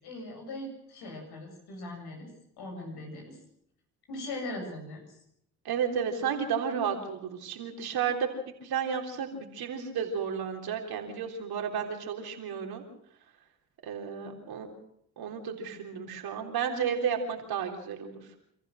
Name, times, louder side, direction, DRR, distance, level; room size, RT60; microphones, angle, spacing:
voice 1, 0.0-2.3 2.6-3.4 4.1-5.2, left 2 dB, 75° left, 2 dB, 7.8 m, -40 dB
voice 2, 5.7-8.3 8.6-12.8 13.8-14.7 15.2-18.2, right 7 dB, 70° right, 3 dB, 3.7 m, -32 dB
27.0 x 14.5 x 6.5 m, 0.73 s
hypercardioid pair, 50°, 39 cm